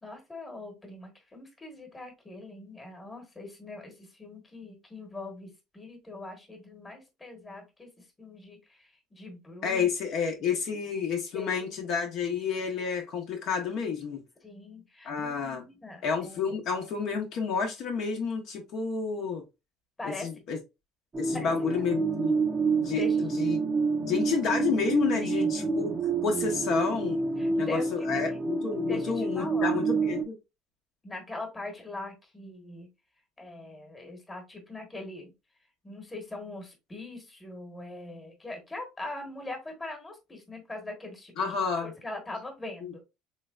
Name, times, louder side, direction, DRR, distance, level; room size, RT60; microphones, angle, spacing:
voice 1, 0.0-7.9 8.2-9.8 11.3-11.7 14.4-16.4 20.0-20.3 21.3-21.8 22.9-23.2 25.2-25.4 27.4-28.5 28.9-29.8 31.0-32.9 33.4-35.3 35.8-41.5 41.8-43.0, left 2 dB, 15° left, 1.1 m, -42 dB
voice 2, 9.6-14.2 15.0-15.6 16.0-19.4 20.0-20.6 21.2-22.5 22.8-23.6 24.0-25.9 26.2-27.2 27.6-30.3 41.4-41.9 42.8-43.0, left 6 dB, 50° left, 0.7 m, -30 dB
sound 1, 21.1-30.2, right 4 dB, 20° right, 0.5 m, -28 dB
3.2 x 3.2 x 2.3 m
cardioid pair, 135°, 0 cm